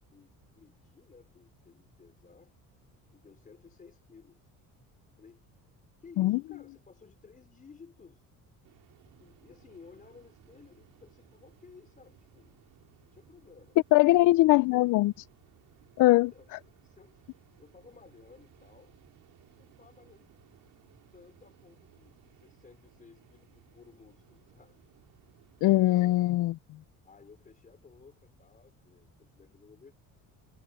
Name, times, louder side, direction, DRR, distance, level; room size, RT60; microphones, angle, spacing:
voice 1, 0.0-2.5 3.1-4.5 5.2-5.4 6.0-8.3 9.0-12.5 13.0-14.2 16.3-18.9 19.5-20.3 21.1-24.8 25.4-26.3 27.0-29.9, left 5 dB, 25° left, 4.6 m, -56 dB
sound 1, 8.6-25.9, right 14 dB, 70° right, 5.7 m, -62 dB
voice 2, 13.9-15.3 16.0-16.3 25.6-26.5, left 18 dB, 60° left, 0.5 m, -21 dB
cardioid pair, 150°, 34 cm